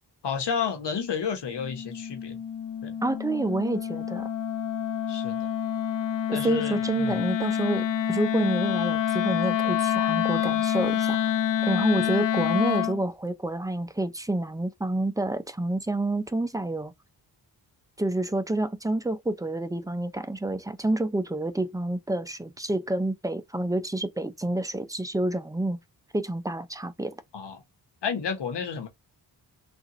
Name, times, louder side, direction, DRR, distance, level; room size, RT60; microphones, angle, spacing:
voice 1, 0.2-2.4 2.8-3.0 5.1-5.5 6.3-7.2 27.3-27.6 28.0-28.9, left 6 dB, 75° left, 1.2 m, -31 dB
Wind instrument woodwind instrument, 1.5-13.0, left 9 dB, 50° left, 0.4 m, -27 dB
voice 2, 3.0-4.3 6.3-11.2 11.6-16.9 18.0-25.8 26.1-27.2, right 2 dB, 10° right, 0.6 m, -28 dB
3.6 x 2.6 x 3.0 m
cardioid pair, 60°, 42 cm